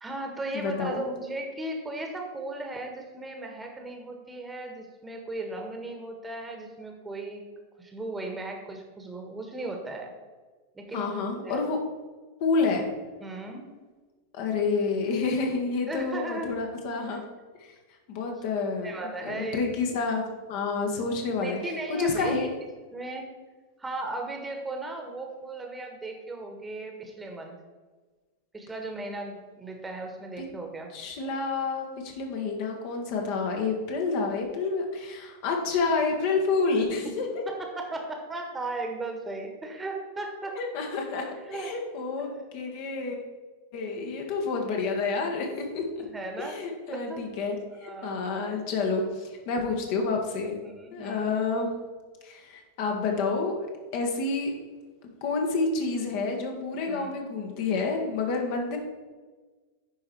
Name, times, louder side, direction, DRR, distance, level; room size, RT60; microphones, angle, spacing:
voice 1, 0.0-7.4 7.8-10.1 10.7-11.2 11.4-11.6 13.2-13.7 15.9-16.5 18.8-19.6 21.4-22.5 22.9-23.3 23.8-27.5 28.5-30.9 37.6-40.6 41.5-41.7 46.0-46.6 46.9-47.2 47.8-48.2 50.6-51.3 56.9-57.1, right 2 dB, 10° right, 3 dB, 1.5 m, -36 dB
voice 2, 0.5-1.0 10.9-11.8 12.4-12.9 14.3-17.2 17.6-17.7 18.1-19.0 19.2-22.5 30.4-30.5 30.9-37.3 40.6-41.2 41.5-43.2 43.7-46.0 46.4-50.5 50.9-51.7 52.2-53.7 53.9-54.5 55.2-58.8, left 4 dB, 45° left, 2 dB, 1.5 m, -29 dB
10.0 x 4.9 x 4.5 m, 1.3 s
figure-of-eight pair, 90°, 0 cm